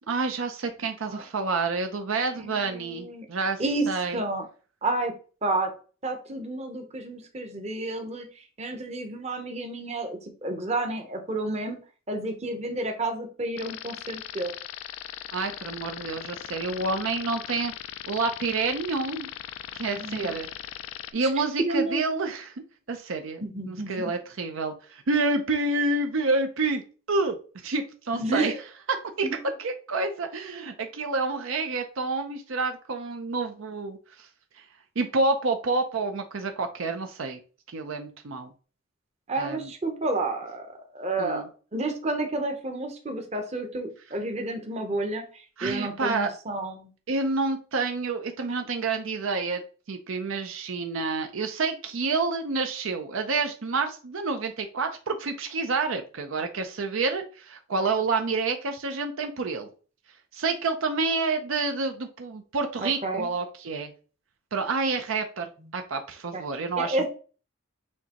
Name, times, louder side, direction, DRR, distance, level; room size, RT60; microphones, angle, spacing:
voice 1, 0.1-3.6 3.9-4.2 15.3-17.7 18.1-19.3 19.7-20.5 21.1-22.5 22.9-23.4 23.7-26.8 27.1-28.5 28.9-29.3 29.6-34.0 35.0-37.4 37.7-38.5 39.4-39.7 41.2-41.5 45.6-46.3 47.1-49.6 49.9-59.7 60.3-63.9 64.5-65.5 65.7-67.0, right 3 dB, 70° right, 5 dB, 0.6 m, -28 dB
voice 2, 2.4-3.3 3.6-3.9 4.1-4.4 4.8-5.1 5.4-5.7 6.0-11.8 12.1-14.5 19.9-20.3 21.2-21.3 21.6-22.3 23.4-24.1 28.1-28.6 29.2-29.4 39.3-41.4 41.7-46.9 62.8-63.3 66.3-66.4 66.8-67.0, right 2 dB, 30° right, 4 dB, 0.8 m, -30 dB
sound 1, 13.6-21.1, left 11 dB, 80° left, 0.4 m, -39 dB
6.4 x 2.8 x 2.9 m, 0.37 s
head